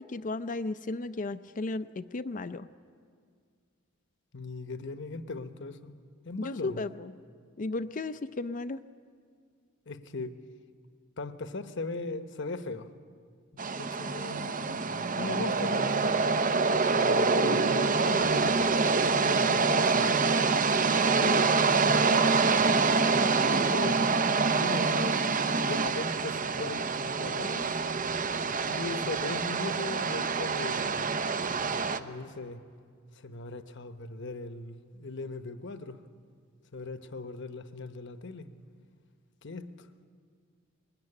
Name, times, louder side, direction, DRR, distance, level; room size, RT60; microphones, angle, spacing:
voice 1, 0.0-2.7 6.4-7.1 7.6-8.8, left 3 dB, 40° left, 11 dB, 0.5 m, -34 dB
voice 2, 4.3-5.9 6.2-6.9 9.9-10.4 11.2-12.9 13.8-14.8 15.2-16.2 17.0-18.5 19.2-20.5 21.1-22.5 23.7-24.1 24.6-25.2 25.6-27.9 28.7-31.1 32.0-32.6 33.1-36.0 36.7-38.5 39.4-39.9, left 3 dB, 65° left, 10 dB, 1.0 m, -39 dB
sound 1, 13.6-32.0, right 4 dB, 45° right, 0.7 m, -26 dB
21.5 x 18.0 x 9.8 m, 2.1 s
head